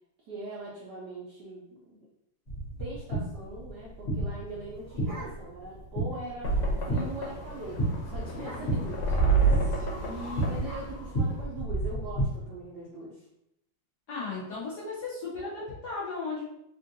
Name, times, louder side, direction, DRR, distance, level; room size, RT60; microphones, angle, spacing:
voice 1, 0.3-2.1 2.8-6.6 6.9-9.6 10.0-13.3, right 1 dB, 70° right, -5 dB, 1.0 m, -41 dB
sound 1, 2.5-12.3, right 2 dB, 45° left, 1.2 m, -33 dB
sound 2, 4.5-5.7 6.1-6.2 6.5-6.8 7.1-7.3 7.6-7.8 8.3-8.9 9.8-11.9, right 1 dB, 10° left, 1.0 m, -47 dB
sound 3, 6.4-11.4, right 4 dB, 80° left, 1.5 m, -29 dB
voice 2, 14.1-16.4, left 4 dB, 65° left, -7 dB, 1.1 m, -36 dB
3.6 x 2.5 x 2.6 m, 0.81 s
omnidirectional pair, 2.3 m